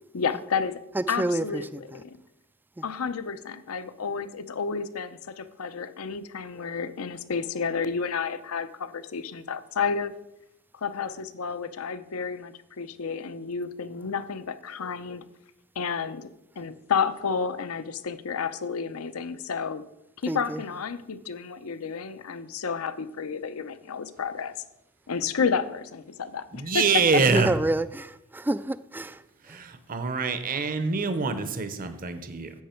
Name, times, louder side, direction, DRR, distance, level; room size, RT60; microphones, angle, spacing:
voice 1, 0.1-0.8 1.1-2.2 2.8-10.1 10.7-15.3 15.8-16.3 16.6-19.8 20.2-24.5 25.1-26.9, left 6 dB, 75° left, 0.6 m, -31 dB
voice 2, 0.9-2.0 2.8-2.9 20.3-20.6 27.2-29.2 29.5-29.6, right 2 dB, 10° right, 0.3 m, -29 dB
voice 3, 26.5-27.6 29.4-32.5, right 4 dB, 40° right, 0.8 m, -25 dB
10.5 x 7.6 x 4.4 m
head